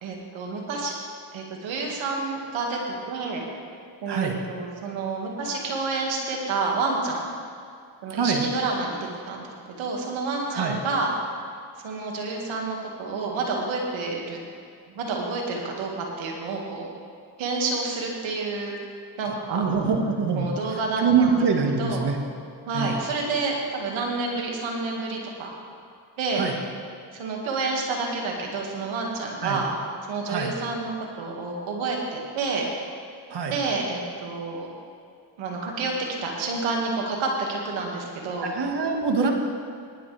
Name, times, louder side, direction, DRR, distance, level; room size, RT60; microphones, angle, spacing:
voice 1, 0.0-0.9 1.3-2.8 3.1-3.4 4.0-7.3 8.0-9.5 9.8-11.1 11.8-14.4 14.9-16.9 17.4-18.7 19.2-19.6 20.1-21.4 21.8-22.1 22.7-25.5 26.2-26.4 27.1-29.7 30.1-32.7 33.4-34.7 35.4-35.9 36.2-38.5, right 3 dB, 90° right, 0 dB, 2.1 m, -29 dB
voice 2, 19.5-20.5 21.0-22.2 22.7-22.9 26.4-26.5 29.4-29.6 30.3-30.5 33.3-33.5 38.4-39.3, right 5 dB, 60° right, 2 dB, 1.9 m, -24 dB
18.5 x 11.0 x 3.4 m, 2.3 s
supercardioid pair, 55°, 45 cm